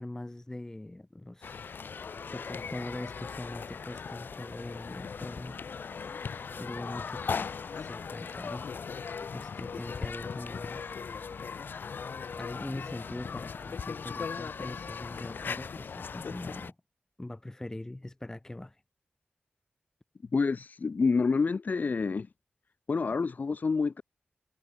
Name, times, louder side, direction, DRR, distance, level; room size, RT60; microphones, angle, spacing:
voice 1, 0.0-1.7 2.2-5.6 6.6-8.7 9.3-10.8 12.4-16.7 17.2-18.8, left 1 dB, 15° left, 1.1 m, -42 dB
sound 1, 1.4-16.7, left 5 dB, 75° left, 1.0 m, -38 dB
voice 2, 20.3-22.3 22.9-24.0, left 4 dB, 55° left, 1.1 m, -28 dB
wide cardioid pair, 110°, 3 cm